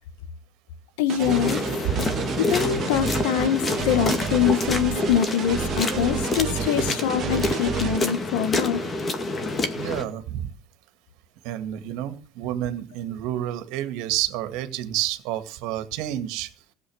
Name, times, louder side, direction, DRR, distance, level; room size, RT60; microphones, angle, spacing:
voice 1, 1.0-1.6 2.4-8.8, left 9 dB, 80° left, 1.5 m, -24 dB
sound 1, 1.1-8.0, right 10 dB, 45° right, 0.7 m, -31 dB
sound 2, 1.3-10.0, left 2 dB, 25° left, 2.2 m, -27 dB
voice 2, 9.8-10.5 11.4-16.5, right 12 dB, 70° right, 2.0 m, -29 dB
15.5 x 8.4 x 6.4 m
supercardioid pair, 115°, 0 cm